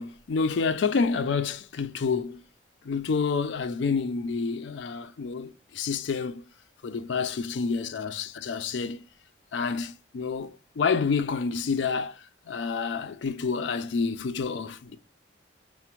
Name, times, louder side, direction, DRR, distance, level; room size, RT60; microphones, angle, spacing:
voice 1, 0.0-2.4 2.8-6.4 6.8-9.0 9.5-15.0, left 5 dB, 75° left, 0.4 m, -28 dB
5.8 x 2.1 x 2.9 m
head